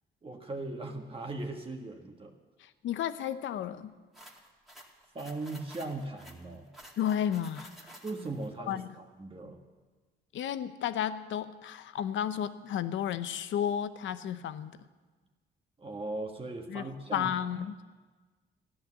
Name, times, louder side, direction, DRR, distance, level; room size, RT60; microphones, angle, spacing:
voice 1, 0.2-2.3 5.1-6.7 8.0-9.6 15.8-17.3, right 2 dB, 25° right, 2 dB, 1.6 m, -39 dB
voice 2, 2.6-3.9 7.0-7.7 8.7-8.9 10.3-14.8 16.7-16.9 17.1-17.8, left 9 dB, 75° left, 13 dB, 0.8 m, -32 dB
sound 1, 4.1-8.5, right 1 dB, ahead, 2.2 m, -52 dB
14.5 x 10.5 x 7.5 m, 1.3 s
cardioid pair, 90°, 20 cm